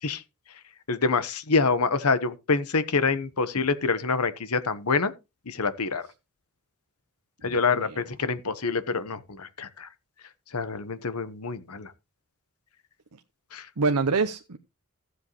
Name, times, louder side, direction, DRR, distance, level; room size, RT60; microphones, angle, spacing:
voice 1, 0.9-5.1 5.5-6.0 7.4-9.9 10.5-11.9 13.5-13.6, left 4 dB, 75° left, 1.1 m, -26 dB
voice 2, 7.5-8.0 13.8-14.6, right 4 dB, 90° right, 0.8 m, -26 dB
15.0 x 8.0 x 3.1 m
head